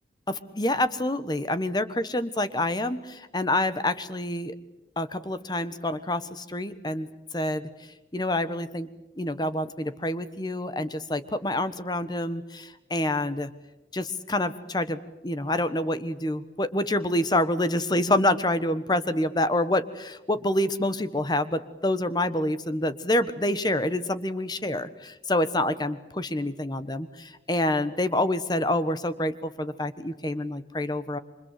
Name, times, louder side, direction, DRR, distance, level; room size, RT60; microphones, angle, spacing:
voice 1, 0.3-4.6 5.0-7.1 7.3-7.7 8.1-8.9 9.2-13.5 13.9-31.2, left 1 dB, 25° left, 12 dB, 1.2 m, -27 dB
28.5 x 25.0 x 7.6 m, 0.95 s
head